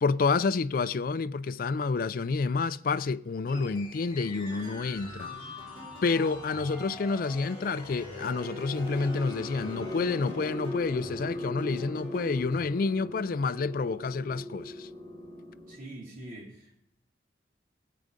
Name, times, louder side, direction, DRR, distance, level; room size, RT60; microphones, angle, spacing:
voice 1, 0.0-5.3 6.0-14.9, left 4 dB, 50° left, 0.4 m, -29 dB
sound 1, 3.5-15.8, left 1 dB, 25° left, 3.4 m, -40 dB
sound 2, 4.4-12.7, right 1 dB, 30° right, 4.3 m, -50 dB
voice 2, 15.7-16.8, right 1 dB, 45° right, 3.8 m, -44 dB
17.5 x 8.4 x 5.2 m
head